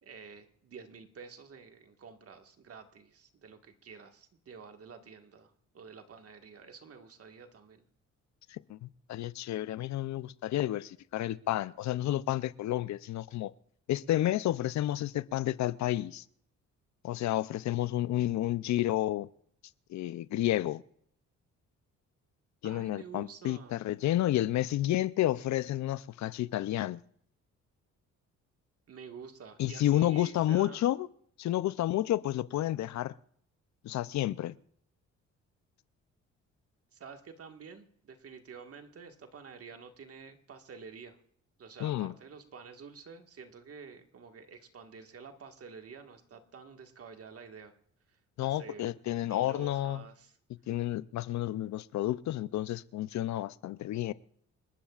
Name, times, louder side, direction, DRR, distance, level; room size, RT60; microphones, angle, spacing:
voice 1, 0.0-7.8 22.6-23.8 28.9-30.8 36.9-41.2 41.6-47.7 48.1-48.8 49.2-50.3, right 5 dB, 50° right, 1.8 m, -49 dB
voice 2, 8.5-13.5 13.9-16.2 17.0-19.3 19.9-20.8 22.6-27.0 29.6-31.1 31.4-33.1 33.8-34.6 41.8-42.1 48.4-50.0 50.7-54.1, left 14 dB, 65° left, 0.6 m, -30 dB
28.5 x 12.5 x 2.5 m
cardioid pair, 90°, 30 cm